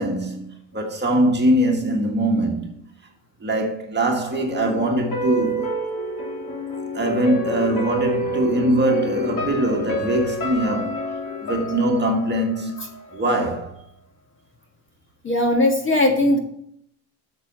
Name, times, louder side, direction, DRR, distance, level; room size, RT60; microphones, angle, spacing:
voice 1, 0.0-2.8 3.4-5.8 6.9-11.0 11.4-13.8, right 1 dB, 20° right, 1.6 m, -22 dB
sound 1, 4.3-13.3 13.6-13.7, left 1 dB, 45° left, 3.2 m, -28 dB
voice 2, 15.2-16.4, left 1 dB, 25° left, 1.6 m, -18 dB
8.1 x 6.9 x 3.9 m
cardioid pair, 110°, 50 cm